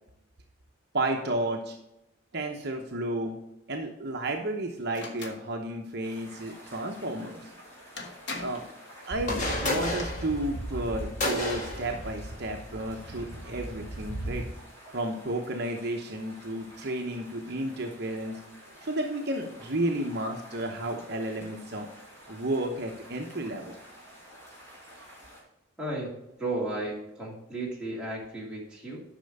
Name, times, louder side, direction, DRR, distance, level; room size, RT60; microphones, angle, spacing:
voice 1, 0.9-1.8 2.3-3.3 3.7-7.5 8.4-8.6 9.0-14.4 14.9-18.4 18.8-21.9 22.3-23.7, right 1 dB, 50° right, 2 dB, 0.9 m, -32 dB
sound 1, 4.9-5.4 7.5-7.6 8.0-8.7 9.6-10.0, left 3 dB, 55° left, 1.3 m, -39 dB
sound 2, 6.0-25.4, equal, 15° left, 3.9 m, -51 dB
sound 3, 9.1-14.4, left 1 dB, 35° left, 1.9 m, -33 dB
voice 2, 25.8-29.0, right 2 dB, 5° right, -5 dB, 2.6 m, -34 dB
10.0 x 5.8 x 5.4 m, 0.87 s
head